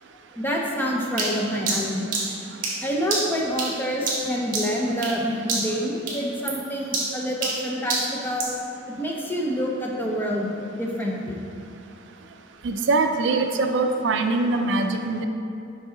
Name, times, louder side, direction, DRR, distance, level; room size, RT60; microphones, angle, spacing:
voice 1, 0.3-2.1 2.8-8.5 8.9-10.5 10.8-11.4, equal, 10° left, -2 dB, 0.6 m, -27 dB
sound 1, 1.2-5.2 5.5-5.8 6.1-8.6, right 3 dB, 45° right, 1.5 m, -28 dB
voice 2, 12.6-15.3, right 3 dB, 65° right, 6 dB, 0.4 m, -23 dB
5.6 x 5.4 x 3.8 m, 2.6 s
head